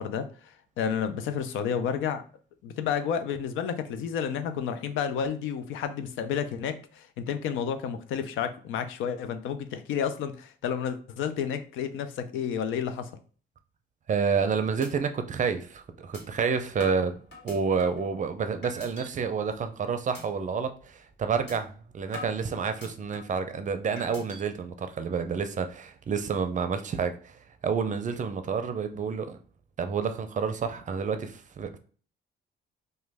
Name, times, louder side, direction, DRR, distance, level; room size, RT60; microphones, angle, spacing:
voice 1, 0.0-2.2 2.6-13.1, left 7 dB, 85° left, 0.4 m, -31 dB
voice 2, 14.1-17.2 17.4-27.4 27.6-29.4 29.8-31.8, right 5 dB, 40° right, 0.5 m, -29 dB
sound 1, 14.8-14.9 15.3-15.4 16.1-16.2 16.8-18.1 18.6-19.1 19.5-19.7 20.1-20.2 20.6-20.8 21.5-21.6 22.1-23.4 24.0-24.4, left 2 dB, 60° left, 1.6 m, -44 dB
3.0 x 2.2 x 3.3 m
cardioid pair, 90°, 20 cm